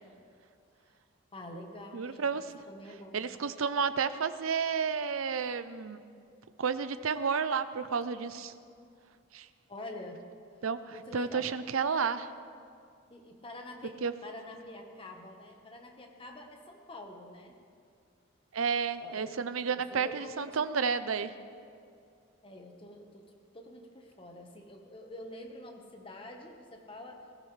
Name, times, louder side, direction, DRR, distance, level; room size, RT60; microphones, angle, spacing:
voice 1, 1.3-2.3 2.7-3.2 9.7-10.2 10.9-11.5 13.1-17.5 19.0-19.3 19.9-20.5 22.4-23.2 23.5-27.2, left 1 dB, 25° left, 2 dB, 1.3 m, -46 dB
voice 2, 1.9-2.5 3.1-6.0 6.6-8.5 9.3-9.5 10.6-12.3 14.0-14.1 18.5-21.3, right 6 dB, 85° right, 12 dB, 0.6 m, -31 dB
20.0 x 14.5 x 3.3 m, 2.3 s
head